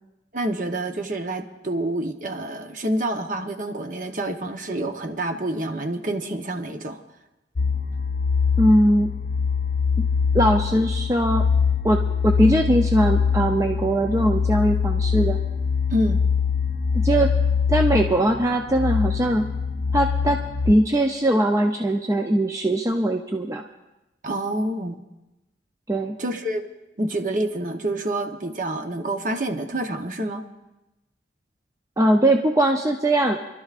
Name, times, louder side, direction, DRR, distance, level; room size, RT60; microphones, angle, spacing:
voice 1, 0.3-7.0 15.9-16.2 24.2-25.0 26.2-26.7 27.0-30.4, right 1 dB, 45° right, 6 dB, 0.8 m, -27 dB
sound 1, 7.6-20.7, left 6 dB, 50° left, 0.4 m, -23 dB
voice 2, 8.6-9.1 10.3-11.4 11.8-15.4 17.0-17.3 17.7-19.4 19.9-20.4 20.7-23.6 25.9-26.1 32.0-33.4, right 1 dB, 15° right, 3 dB, 0.5 m, -20 dB
28.0 x 12.0 x 2.5 m, 0.99 s
head